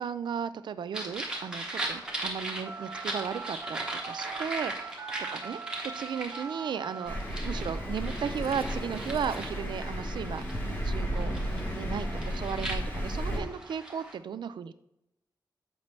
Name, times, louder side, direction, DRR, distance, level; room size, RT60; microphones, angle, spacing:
voice 1, 0.0-5.0 5.3-14.7, right 7 dB, 85° right, 13 dB, 0.4 m, -35 dB
sound 1, 0.9-14.1, right 2 dB, 10° right, 1.0 m, -39 dB
Telephone, 2.7-9.5, right 5 dB, 35° right, 0.7 m, -43 dB
Thunder, 7.1-13.4, equal, 25° left, 1.0 m, -33 dB
7.3 x 5.1 x 3.2 m, 0.85 s
wide cardioid pair, 180°, 8 cm